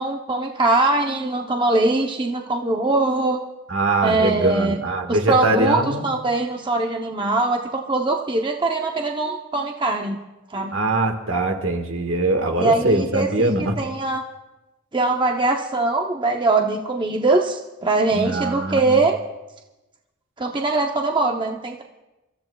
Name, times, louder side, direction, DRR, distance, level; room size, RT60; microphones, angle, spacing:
voice 1, 0.0-3.4 4.0-4.8 5.1-10.2 10.5-10.7 12.6-14.2 14.9-19.2 20.4-21.8, right 2 dB, 25° right, 2 dB, 0.7 m, -22 dB
voice 2, 3.7-6.1 10.7-13.8 18.1-19.0, right 2 dB, 65° right, 4 dB, 1.5 m, -22 dB
28.5 x 13.5 x 2.3 m, 1.0 s
head